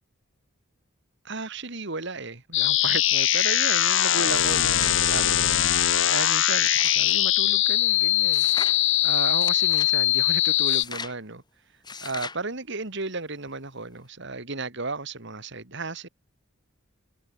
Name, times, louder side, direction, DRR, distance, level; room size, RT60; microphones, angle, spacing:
voice 1, 1.2-8.4 9.0-11.4 12.0-16.1, right 3 dB, 60° right, 3.0 m, -34 dB
sound 1, 2.5-10.8, left 12 dB, 65° left, 2.2 m, -21 dB
sound 2, 4.3-5.0 5.5-7.2 8.3-8.8 9.4-9.9 10.7-11.2 11.8-12.4, left 4 dB, 20° left, 7.9 m, -39 dB
head